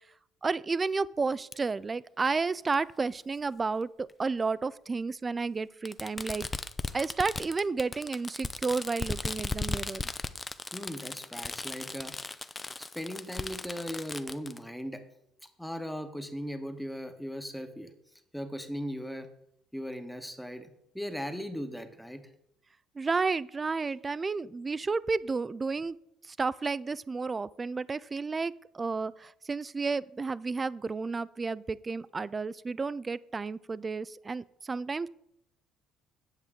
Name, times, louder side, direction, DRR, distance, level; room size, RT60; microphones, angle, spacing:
voice 1, 0.4-6.5 6.9-10.1 23.0-26.0 26.3-35.1, right 4 dB, 30° right, 20 dB, 0.3 m, -32 dB
Fireworks, 1.5-1.6 2.7-2.8 4.1-4.2 5.8-14.6, left 3 dB, 20° left, 0.5 m, -37 dB
voice 2, 10.7-12.4 12.8-15.0 15.6-17.9 18.3-19.3 19.7-22.3, equal, ahead, 7 dB, 1.2 m, -38 dB
8.9 x 7.4 x 3.7 m, 0.77 s
hypercardioid pair, 60°, 0 cm